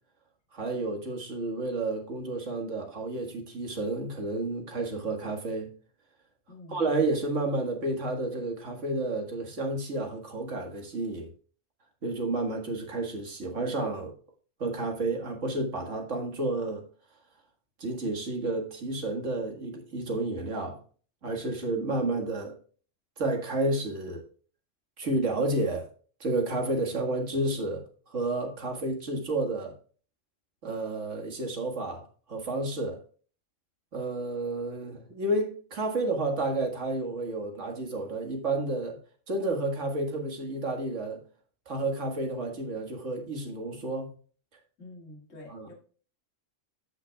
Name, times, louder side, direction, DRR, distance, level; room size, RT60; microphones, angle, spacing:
voice 1, 0.5-5.7 6.7-11.3 12.0-14.1 14.6-16.8 17.8-20.8 21.2-22.6 23.2-24.3 25.0-25.9 26.2-29.7 30.6-33.0 33.9-39.0 39.3-41.2 41.7-44.1 45.5-45.7, right 2 dB, 70° right, 2.1 m, -31 dB
voice 2, 6.5-6.8 44.8-45.7, left 2 dB, 75° left, 2.5 m, -47 dB
14.0 x 5.9 x 2.3 m
omnidirectional pair, 1.3 m